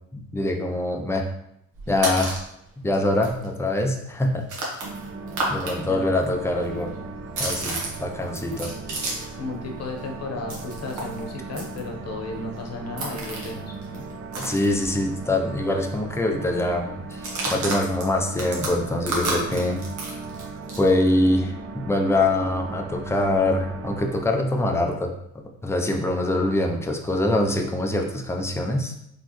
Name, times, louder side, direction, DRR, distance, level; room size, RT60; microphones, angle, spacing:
voice 1, 0.1-1.3 1.9-2.4 2.8-4.8 5.5-6.9 7.4-8.7 14.4-19.8 20.8-28.9, left 1 dB, 10° left, 2 dB, 0.6 m, -24 dB
sound 1, 1.7-2.5 2.9-3.0 3.2-5.8 6.0-9.4 9.7-15.3 15.6-15.7 16.0-16.4 17.1-20.9, right 2 dB, 75° right, 1.3 m, -32 dB
sound 2, 4.8-24.2, right 3 dB, 50° right, 0.6 m, -37 dB
voice 2, 5.8-6.1 9.4-14.0, left 3 dB, 55° left, 1 dB, 1.0 m, -34 dB
4.2 x 3.2 x 3.1 m, 0.75 s
cardioid pair, 90°, 30 cm